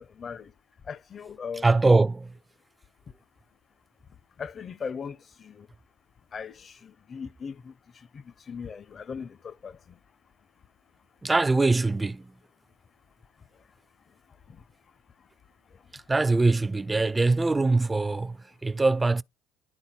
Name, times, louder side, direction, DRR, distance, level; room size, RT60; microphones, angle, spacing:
voice 1, 0.2-0.5 0.9-1.6 4.4-5.7 6.3-7.7 8.1-9.8, left 6 dB, 35° left, 0.6 m, -38 dB
voice 2, 1.6-2.3 11.2-12.3 15.9-19.2, right 3 dB, 15° right, 0.4 m, -23 dB
11.0 x 3.9 x 4.3 m
cardioid pair, 105°, 0 cm